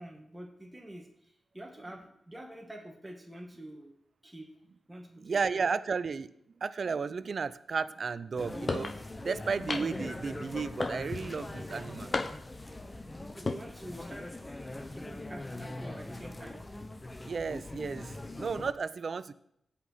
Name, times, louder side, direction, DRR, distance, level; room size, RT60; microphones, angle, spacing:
voice 1, 0.0-3.9 4.2-4.5 4.9-5.7 12.6-12.8 13.0-16.6, right 1 dB, 15° right, 1 dB, 2.0 m, -47 dB
voice 2, 5.2-6.3 6.6-12.1 17.2-19.3, right 5 dB, 65° right, 16 dB, 0.5 m, -33 dB
sound 1, 8.4-18.7, left 2 dB, 25° left, 1.0 m, -42 dB
sound 2, 8.7-9.0 9.7-10.1 10.8-11.3 12.1-12.6 13.3-13.6, left 3 dB, 50° left, 0.8 m, -33 dB
16.5 x 5.8 x 4.8 m, 0.75 s
cardioid pair, 45°, 0 cm